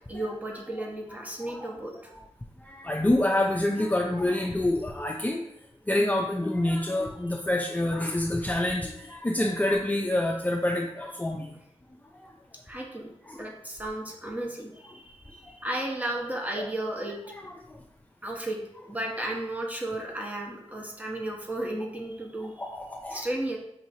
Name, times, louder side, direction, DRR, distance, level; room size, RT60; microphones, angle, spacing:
voice 1, 0.1-2.1 12.7-17.1 18.2-18.6 18.9-22.5 23.1-23.6, right 1 dB, 15° right, -1 dB, 1.1 m, -34 dB
voice 2, 2.6-5.5 5.9-11.5 12.1-12.3 13.3-13.4 15.4-15.5 16.6-16.7 17.4-17.8 22.6-23.2, left 1 dB, 15° left, 0 dB, 0.4 m, -27 dB
5.5 x 2.9 x 2.7 m, 0.80 s
cardioid pair, 50°, 11 cm